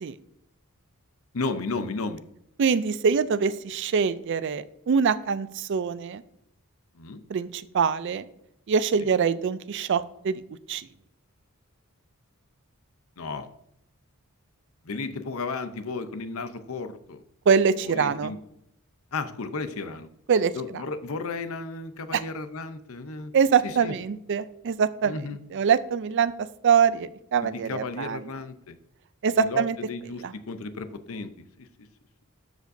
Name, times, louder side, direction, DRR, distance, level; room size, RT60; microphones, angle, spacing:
voice 1, 1.3-2.2 6.9-7.2 9.0-9.1 13.2-13.5 14.8-17.2 17.8-18.4 19.1-20.1 20.5-23.3 23.6-23.9 25.0-25.4 27.4-28.8 29.3-31.3 31.6-31.9, left 3 dB, 65° left, 10 dB, 0.7 m, -34 dB
voice 2, 2.6-6.2 7.3-8.2 8.7-10.4 10.7-10.8 17.5-18.3 20.3-20.5 23.3-25.1 25.5-26.3 26.6-28.2 29.2-29.8, right 6 dB, 55° right, 14 dB, 0.4 m, -24 dB
13.0 x 5.1 x 2.6 m, 0.75 s
head